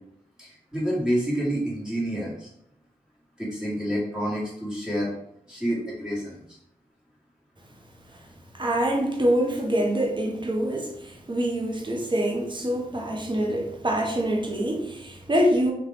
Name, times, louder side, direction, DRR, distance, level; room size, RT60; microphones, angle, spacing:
voice 1, 0.4-2.5 3.4-5.1 5.5-6.4, equal, 5° right, -7 dB, 1.2 m, -28 dB
voice 2, 8.5-15.7, right 1 dB, 30° right, 1 dB, 0.7 m, -25 dB
2.5 x 2.1 x 3.3 m, 0.74 s
cardioid pair, 50°, 16 cm